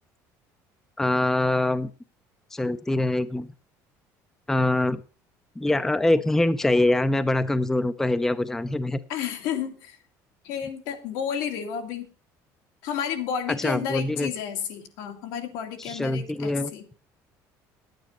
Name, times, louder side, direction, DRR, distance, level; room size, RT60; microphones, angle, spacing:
voice 1, 1.0-1.9 2.5-3.5 4.5-5.0 5.6-9.0 13.5-14.3 15.8-16.7, left 2 dB, 5° left, 13 dB, 0.5 m, -24 dB
voice 2, 9.1-10.0 10.4-12.1 12.8-16.9, left 8 dB, 85° left, 5 dB, 2.3 m, -31 dB
10.5 x 9.3 x 5.6 m, 0.36 s
cardioid pair, 155°, 7 cm